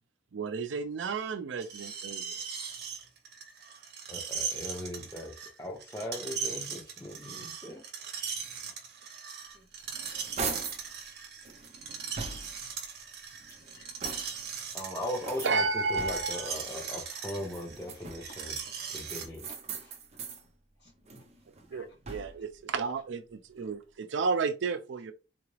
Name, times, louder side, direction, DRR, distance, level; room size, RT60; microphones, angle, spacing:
voice 1, 0.3-2.4 15.4-16.5 21.7-25.1, right 4 dB, 85° right, 0.5 m, -32 dB
Screech, 1.6-19.3, right 6 dB, 60° right, 0.9 m, -39 dB
voice 2, 4.1-7.8 14.7-18.5 18.9-19.4, left 1 dB, 15° left, 0.6 m, -39 dB
voice 3, 7.7-8.1 13.7-13.9 17.0-17.3 18.4-18.8 19.5-20.2 20.8-21.2 21.6-22.2, left 1 dB, 60° left, 2.0 m, -59 dB
sound 1, 9.5-10.9 11.4-12.7 13.3-14.5 15.2-16.5 17.4-18.4 19.0-20.4 20.9-22.5, right 4 dB, 35° right, 0.5 m, -41 dB
3.7 x 2.4 x 3.1 m
head